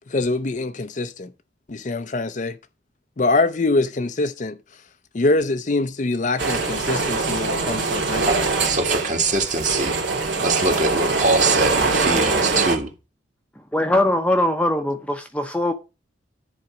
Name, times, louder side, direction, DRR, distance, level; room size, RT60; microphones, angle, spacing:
voice 1, 0.1-1.3 1.7-2.6 3.2-4.6 5.1-8.5, left 2 dB, 40° left, 0.5 m, -24 dB
sound 1, 6.4-12.8, right 3 dB, 75° right, 2.0 m, -23 dB
voice 2, 8.2-10.0 10.4-12.9, right 3 dB, 40° right, 1.7 m, -23 dB
voice 3, 13.7-15.7, left 1 dB, 5° left, 0.7 m, -21 dB
10.5 x 4.2 x 6.1 m
head